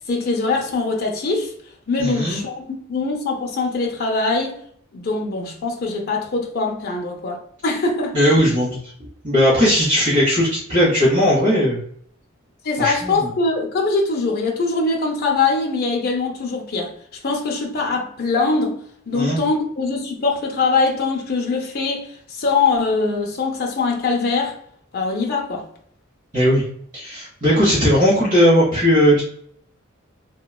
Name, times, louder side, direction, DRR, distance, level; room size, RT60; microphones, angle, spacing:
voice 1, 0.1-1.5 1.9-4.6 4.9-8.2 12.6-16.9 17.2-18.8 19.1-24.5 24.9-25.7, left 3 dB, 50° left, 0.5 m, -22 dB
voice 2, 2.0-2.4 8.1-8.8 9.2-11.8 12.8-13.3 19.1-19.4 26.3-26.6 26.9-29.2, equal, 40° right, 1.0 m, -17 dB
3.0 x 2.2 x 2.2 m
head